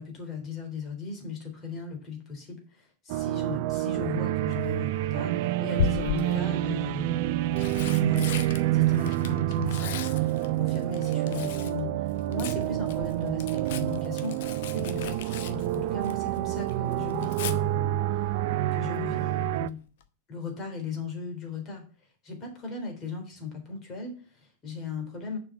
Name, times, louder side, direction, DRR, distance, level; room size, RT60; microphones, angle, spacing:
voice 1, 0.0-7.2 7.9-8.3 8.7-12.0 12.3-18.0 18.7-19.8 20.3-21.8 22.2-25.4, left 4 dB, 30° left, 2 dB, 3.6 m, -37 dB
sound 1, 3.1-19.7, right 14 dB, 50° right, 0.4 m, -28 dB
Tearing, 4.3-4.7 5.7-6.5 7.3-11.8 12.1-16.4 16.7-17.5 19.4-19.7 20.0-20.1, left 7 dB, 55° left, 0.9 m, -36 dB
6.9 x 5.4 x 7.1 m, 0.39 s
figure-of-eight pair, 90°, 0 cm